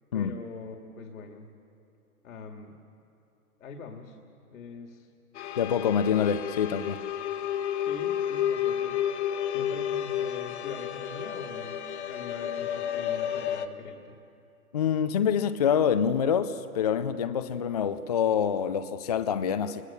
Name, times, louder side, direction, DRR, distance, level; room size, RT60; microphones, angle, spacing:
voice 1, 0.1-1.5 2.2-2.8 3.6-4.2 4.5-5.1 7.8-9.0 9.4-14.2, left 4 dB, 65° left, 4 dB, 2.4 m, -43 dB
sound 1, 5.3-13.7, left 10 dB, 45° left, 1.4 m, -31 dB
voice 2, 5.6-7.0 14.7-19.8, left 8 dB, 30° left, 11 dB, 0.5 m, -26 dB
27.5 x 20.5 x 7.0 m, 2.8 s
hypercardioid pair, 145°, 45 cm